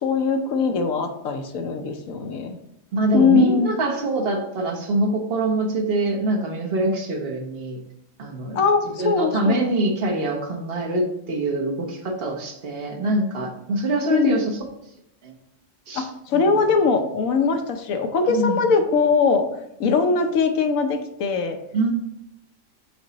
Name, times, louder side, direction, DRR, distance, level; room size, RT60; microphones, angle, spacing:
voice 1, 0.0-2.6 3.1-3.7 8.5-9.7 14.1-14.4 15.9-19.4 19.8-21.6, left 5 dB, 80° left, 7 dB, 1.2 m, -21 dB
voice 2, 2.9-7.8 8.2-8.6 9.0-14.6 15.2-15.3 15.9-16.1 16.3-16.4 18.3-18.6 21.7-21.9, right 2 dB, 50° right, 1 dB, 1.2 m, -24 dB
6.6 x 4.2 x 4.0 m, 0.80 s
omnidirectional pair, 1.4 m